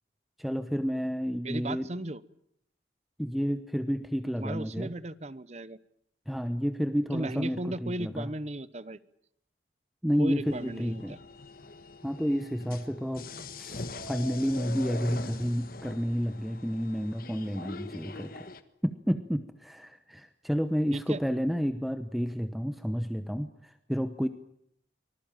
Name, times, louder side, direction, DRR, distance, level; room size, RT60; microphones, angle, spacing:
voice 1, 0.4-1.9 3.2-4.9 6.3-8.3 10.0-11.1 12.0-13.3 13.6-18.3 18.8-24.3, equal, ahead, 9 dB, 0.9 m, -30 dB
voice 2, 1.4-2.2 4.4-5.8 7.1-9.0 10.2-11.2 20.9-21.2, right 1 dB, 35° right, 16 dB, 0.9 m, -36 dB
sound 1, 10.4-18.6, left 3 dB, 50° left, 1.5 m, -43 dB
25.0 x 20.0 x 9.1 m, 0.72 s
head